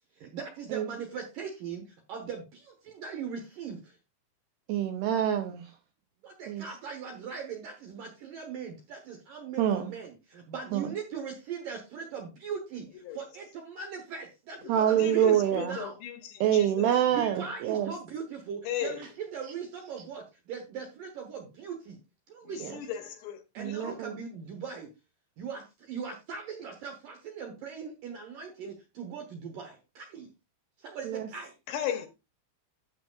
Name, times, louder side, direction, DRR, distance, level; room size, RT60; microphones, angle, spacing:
voice 1, 0.2-4.0 6.2-16.0 17.1-22.0 22.3-22.8 23.5-24.9 25.4-30.3 30.8-31.5, right 6 dB, 70° right, 2.1 m, -40 dB
voice 2, 4.7-5.7 6.5-6.7 9.6-9.9 10.7-10.9 14.7-15.8 16.4-17.9 22.6-22.7 23.6-24.2 31.0-31.3, right 10 dB, 85° right, 2.4 m, -26 dB
voice 3, 15.0-16.9 18.7-19.0 22.4-24.0 31.7-32.1, left 9 dB, 75° left, 2.7 m, -36 dB
12.0 x 7.7 x 2.4 m
omnidirectional pair, 5.5 m